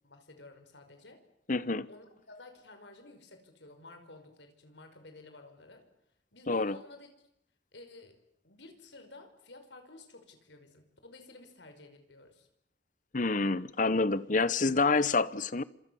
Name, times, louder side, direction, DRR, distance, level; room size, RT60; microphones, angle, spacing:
voice 1, 0.0-1.2 1.9-5.9 6.3-7.1 7.7-8.2 8.4-12.5, left 2 dB, 85° left, 5.4 m, -53 dB
voice 2, 1.5-1.9 6.5-6.8 13.1-15.6, left 3 dB, 45° left, 1.0 m, -27 dB
30.0 x 26.5 x 7.2 m
head